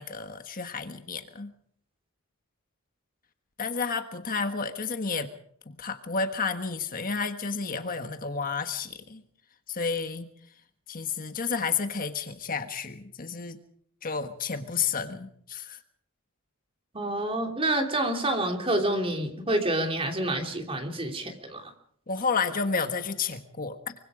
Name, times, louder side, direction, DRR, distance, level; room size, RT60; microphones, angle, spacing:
voice 1, 0.0-1.5 3.6-5.3 5.7-9.2 9.7-10.3 10.9-13.6 14.0-15.8 22.1-23.9, left 5 dB, 40° left, 7 dB, 1.5 m, -31 dB
voice 2, 16.9-21.7, right 1 dB, 25° right, 4 dB, 3.2 m, -28 dB
24.5 x 24.5 x 5.0 m, 0.64 s
head